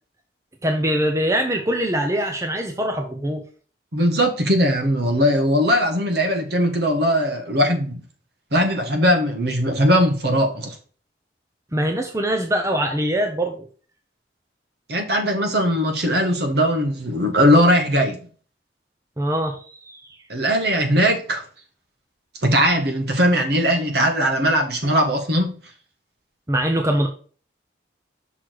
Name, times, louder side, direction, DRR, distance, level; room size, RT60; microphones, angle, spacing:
voice 1, 0.6-3.4 11.7-13.7 19.2-20.2 26.5-27.1, right 1 dB, 15° right, 0.7 m, -23 dB
voice 2, 3.9-8.0 8.5-10.8 14.9-18.2 20.3-21.4 22.4-25.6, equal, 55° right, 1.5 m, -19 dB
6.2 x 4.3 x 4.7 m
head